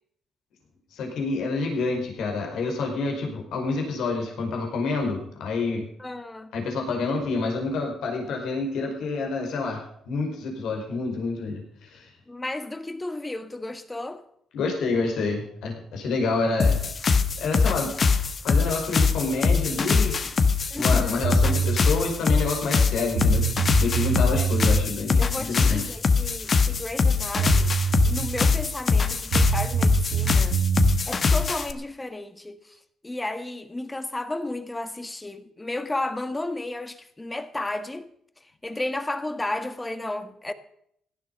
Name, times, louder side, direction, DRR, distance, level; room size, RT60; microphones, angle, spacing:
voice 1, 0.9-5.9 6.5-12.1 14.5-16.8 17.4-17.9 18.4-20.3 20.7-23.4 23.8-25.9, left 3 dB, 80° left, 5.0 m, -28 dB
voice 2, 6.0-6.5 12.3-14.2 20.7-21.2 24.3-24.8 25.2-27.8 28.0-30.6 31.1-38.1 38.4-40.5, left 2 dB, 15° left, 1.7 m, -33 dB
sound 1, 16.6-31.7, left 5 dB, 45° left, 1.5 m, -22 dB
sound 2, 21.2-21.8 22.8-22.9 23.1-24.8 27.0-27.1 27.4-28.6 29.3-31.0, right 8 dB, 90° right, 2.4 m, -25 dB
17.0 x 12.0 x 5.4 m
cardioid pair, 90°, 0 cm